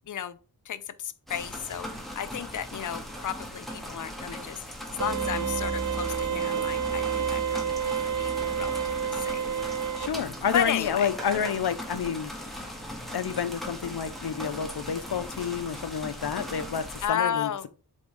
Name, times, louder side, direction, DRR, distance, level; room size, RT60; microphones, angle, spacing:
voice 1, 0.1-0.4 0.7-9.5 10.5-11.1 17.0-17.7, left 9 dB, 55° left, 0.5 m, -33 dB
sound 1, 1.3-17.1, equal, ahead, 1.8 m, -39 dB
sound 2, 5.0-12.4, right 2 dB, 15° right, 1.5 m, -40 dB
sound 3, 5.0-10.1, right 8 dB, 55° right, 0.6 m, -30 dB
voice 2, 10.0-12.6 13.1-17.7, left 7 dB, 90° left, 0.7 m, -30 dB
7.7 x 3.6 x 3.6 m
wide cardioid pair, 70°, 38 cm